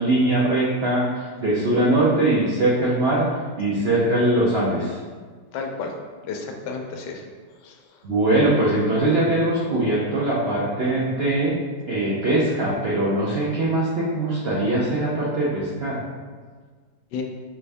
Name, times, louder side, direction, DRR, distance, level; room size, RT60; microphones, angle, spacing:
voice 1, 0.0-3.3 3.6-5.0 8.0-11.6 11.9-16.0, right 1 dB, 70° right, -6 dB, 0.6 m, -21 dB
voice 2, 5.5-5.9 6.2-7.2 7.6-8.0 17.1-17.2, left 5 dB, 75° left, 3 dB, 1.2 m, -32 dB
5.7 x 2.6 x 3.3 m, 1.5 s
omnidirectional pair, 2.0 m